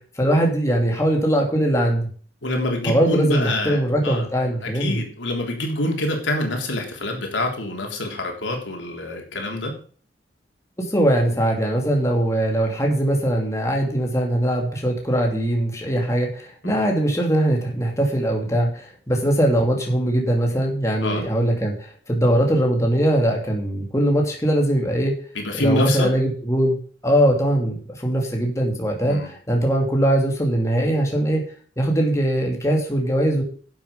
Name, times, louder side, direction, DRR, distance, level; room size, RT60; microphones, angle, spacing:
voice 1, 0.2-2.1 2.8-5.0 10.8-25.1 25.5-26.8 27.0-31.4 31.8-33.4, right 1 dB, 15° left, 0 dB, 2.8 m, -21 dB
voice 2, 2.4-3.8 4.0-4.3 4.6-9.7 16.6-16.8 21.0-21.3 25.3-26.1 29.0-29.3, left 1 dB, 90° left, 2 dB, 3.5 m, -26 dB
11.5 x 7.8 x 5.3 m, 0.44 s
head